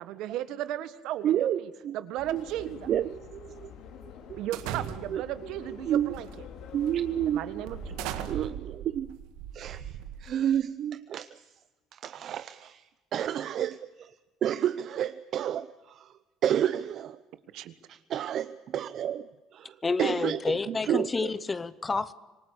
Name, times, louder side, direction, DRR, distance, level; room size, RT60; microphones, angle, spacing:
voice 1, 0.0-1.5 1.9-2.7 4.4-6.3 7.2-8.0 17.5-17.7, right 12 dB, 70° right, 13 dB, 1.6 m, -35 dB
voice 2, 1.2-2.0 2.3-3.7 4.3-4.4 5.1-5.2 5.7-6.1 6.7-7.6 8.2-9.2 9.5-11.5 11.9-14.1 14.4-17.2 17.9-21.3, right 10 dB, 50° right, 13 dB, 0.7 m, -31 dB
Subway metro underground, 2.2-8.3, left 7 dB, 65° left, 3.3 m, -46 dB
sound 1, 4.5-5.3 6.1-6.4 6.9-7.0 7.7-10.6, right 11 dB, 85° right, 1.9 m, -38 dB
voice 3, 19.8-22.1, left 4 dB, 20° left, 17 dB, 0.8 m, -29 dB
26.0 x 19.0 x 8.4 m, 1.2 s
cardioid pair, 135°, 0 cm